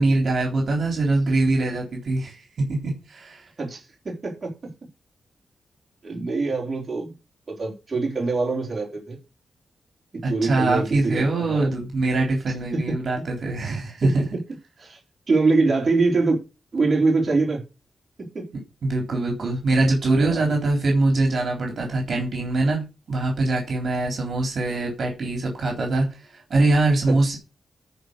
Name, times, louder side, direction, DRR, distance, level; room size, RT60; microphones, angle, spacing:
voice 1, 0.0-3.4 10.2-14.2 18.8-27.4, right 2 dB, 50° right, 3.7 m, -23 dB
voice 2, 3.6-4.7 6.0-7.1 7.5-9.2 10.1-11.7 12.7-13.0 14.0-14.1 14.8-15.0 15.3-16.4 16.7-17.6 18.2-18.5 20.2-20.5 27.1-27.4, right 3 dB, 30° right, 4.2 m, -24 dB
14.0 x 5.0 x 6.6 m
wide cardioid pair, 145°, 0 cm